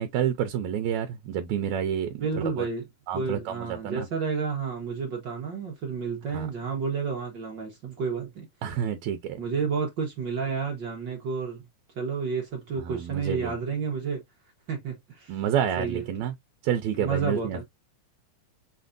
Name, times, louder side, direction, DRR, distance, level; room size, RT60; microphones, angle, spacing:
voice 1, 0.0-2.2 2.6-2.7 3.1-4.1 6.3-6.5 8.6-9.4 12.8-13.5 15.3-16.3 16.6-17.6, right 9 dB, 75° right, 1.9 m, -29 dB
voice 2, 2.2-8.5 9.4-11.7 11.9-14.2 14.7-15.4 15.8-16.0 17.0-17.6, right 5 dB, 55° right, 1.3 m, -31 dB
5.8 x 3.1 x 2.6 m
omnidirectional pair, 3.5 m